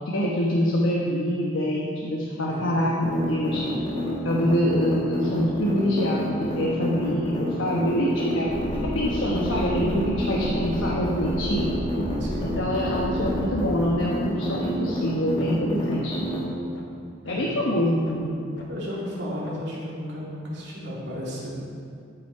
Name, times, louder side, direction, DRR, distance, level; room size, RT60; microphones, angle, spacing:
voice 1, 0.0-3.6 4.2-8.5 8.9-11.7 12.4-16.1 17.2-18.3, equal, 85° left, -4 dB, 1.1 m, -25 dB
sound 1, 3.0-16.4, equal, 25° left, 1.6 m, -29 dB
sound 2, 8.5-13.8, equal, 50° left, 0.9 m, -34 dB
sound 3, 14.5-14.6 15.0-15.1 15.4-15.5 15.9-16.0 16.4-16.5 16.7-16.9 17.2-17.4 17.8-18.1 18.6-18.7 19.1-19.2 19.4-19.6, left 1 dB, 70° left, 1.2 m, -46 dB
voice 2, 18.7-21.7, equal, 60° right, -6 dB, 2.6 m, -34 dB
13.0 x 5.8 x 4.6 m, 2.4 s
head